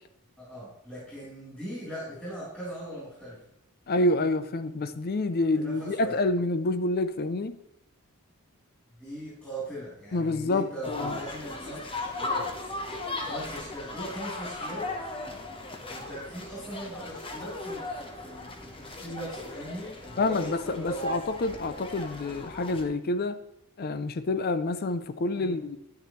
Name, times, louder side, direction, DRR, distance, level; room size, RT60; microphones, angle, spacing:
voice 1, 0.4-3.4 5.5-6.2 9.0-12.5 13.2-14.9 15.9-21.2 25.3-25.6, right 1 dB, 5° left, 3.7 m, -40 dB
voice 2, 3.9-7.6 10.1-11.2 20.2-23.4 23.8-25.8, left 2 dB, 45° left, 0.5 m, -28 dB
sound 1, 10.8-22.8, left 2 dB, 25° left, 0.9 m, -37 dB
10.0 x 9.6 x 3.1 m
head